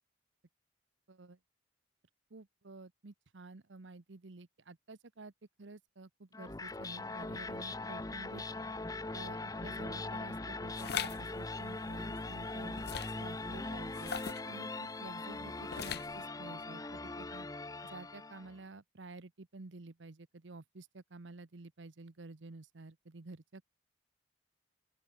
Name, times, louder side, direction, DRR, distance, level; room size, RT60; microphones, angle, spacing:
voice 1, 1.1-1.4 2.3-5.3 5.6-8.4 9.1-12.8 13.2-17.5 17.8-23.6, right 3 dB, 85° right, 0.9 m, -51 dB
sound 1, 6.3-18.6, left 2 dB, 20° left, 0.8 m, -41 dB
sound 2, 10.8-11.2 12.7-13.2 13.9-14.5 15.7-16.2, left 8 dB, 60° left, 0.8 m, -39 dB
open air
head